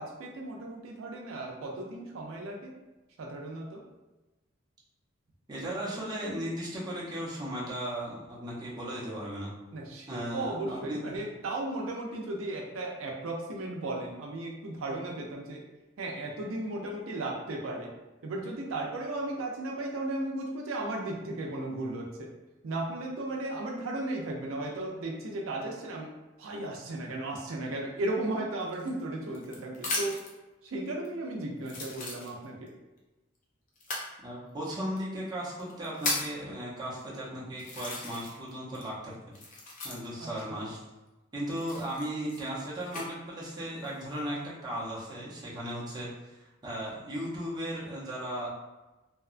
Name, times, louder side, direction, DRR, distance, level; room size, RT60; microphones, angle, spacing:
voice 1, 0.0-2.7 3.2-3.8 9.7-15.6 16.0-17.9 18.2-22.3 22.6-26.1 26.4-30.2 30.6-32.7 40.2-40.7, right 2 dB, 85° right, 0 dB, 0.4 m, -35 dB
voice 2, 5.5-9.5 10.1-11.2 34.2-39.1 39.8-40.8 41.3-48.5, equal, 20° right, -6 dB, 0.7 m, -36 dB
sound 1, 28.7-30.4 31.0-31.1 31.6-32.7 33.8-34.1 35.0-35.1 35.6-36.4 37.1-37.2 37.6-38.5 38.7-40.3 41.5-43.1 43.7-44.2, left 2 dB, 40° left, 0.6 m, -36 dB
2.8 x 2.2 x 2.4 m, 1.1 s
head